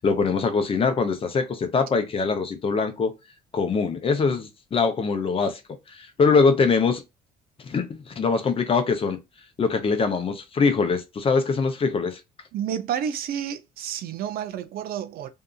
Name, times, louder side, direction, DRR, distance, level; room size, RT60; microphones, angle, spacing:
voice 1, 0.0-3.2 3.5-5.6 5.9-7.0 7.6-9.2 9.6-12.2, left 4 dB, 35° left, 0.6 m, -23 dB
voice 2, 12.5-15.3, right 9 dB, 60° right, 0.5 m, -30 dB
2.7 x 2.4 x 2.3 m
cardioid pair, 110°, 17 cm